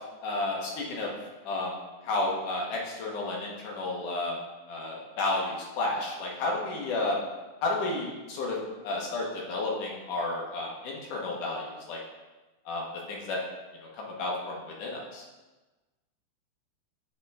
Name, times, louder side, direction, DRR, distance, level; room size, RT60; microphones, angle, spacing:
voice 1, 0.2-1.1 1.4-1.7 2.0-4.3 4.7-7.2 7.6-8.6 8.8-12.0 12.7-13.4 13.9-15.2, left 2 dB, 65° left, -3 dB, 2.1 m, -32 dB
11.0 x 3.6 x 3.4 m, 1.2 s
omnidirectional pair, 4.7 m